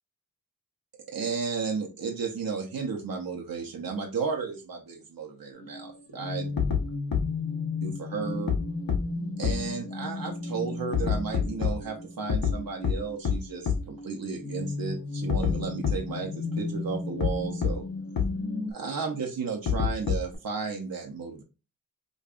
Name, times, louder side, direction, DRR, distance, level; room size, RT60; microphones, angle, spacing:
voice 1, 1.1-6.5 7.8-8.5 9.4-17.8 18.7-21.4, right 5 dB, 85° right, 1 dB, 0.8 m, -33 dB
sound 1, 5.5-18.7, left 3 dB, 40° left, 0.7 m, -35 dB
sound 2, 6.6-6.8 7.1-7.2 8.5-8.6 8.9-9.0 9.4-9.5 10.9-11.7 12.3-12.5 12.8-12.9 13.2-13.3 13.7-13.8 15.3-15.5 15.8-15.9 17.2-17.3 17.6-17.7 18.2-18.3 19.7-20.4, left 8 dB, 85° left, 0.8 m, -25 dB
5.1 x 2.3 x 2.4 m, 0.29 s
cardioid pair, 55°, 34 cm